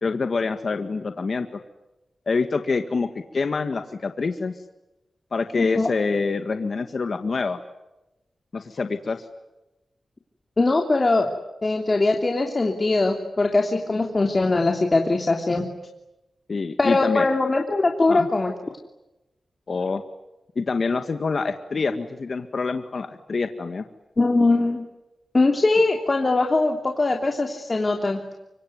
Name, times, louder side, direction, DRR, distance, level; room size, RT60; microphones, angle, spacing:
voice 1, 0.0-1.6 2.3-4.5 5.3-7.6 8.5-9.2 16.5-17.3 18.1-18.3 19.7-20.0 20.6-23.9, left 4 dB, 60° left, 7 dB, 1.9 m, -26 dB
voice 2, 5.6-5.9 10.6-11.3 11.6-15.6 16.8-18.5 24.2-24.8 25.3-28.2, left 2 dB, 40° left, 2 dB, 3.1 m, -21 dB
26.0 x 24.0 x 9.6 m, 0.96 s
cardioid pair, 65°, 0 cm